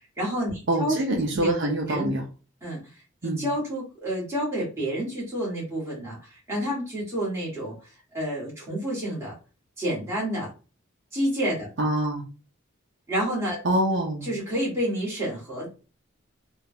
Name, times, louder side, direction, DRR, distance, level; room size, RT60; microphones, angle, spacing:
voice 1, 0.2-1.5 1.9-2.1 2.6-2.8 3.2-7.7 8.1-9.3 9.8-10.5 11.1-11.7 13.1-13.6 14.2-15.7, equal, 15° right, -6 dB, 1.7 m, -29 dB
voice 2, 0.7-2.2 3.2-3.4 11.8-12.2 13.6-14.3, right 1 dB, 60° right, 1 dB, 0.6 m, -25 dB
3.5 x 2.3 x 2.7 m, 0.33 s
head